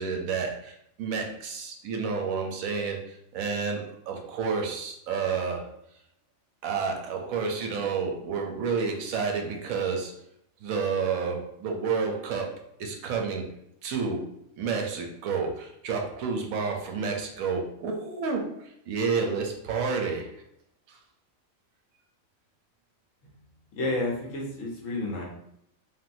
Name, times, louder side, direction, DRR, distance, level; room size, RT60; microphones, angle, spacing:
voice 1, 0.0-3.0 3.3-5.6 6.6-10.1 10.6-13.5 13.8-14.2 14.6-20.3, right 5 dB, 90° right, 2 dB, 1.1 m, -30 dB
voice 2, 23.8-25.2, left 2 dB, 75° left, -1 dB, 1.2 m, -30 dB
3.3 x 2.6 x 2.5 m, 0.74 s
omnidirectional pair, 1.4 m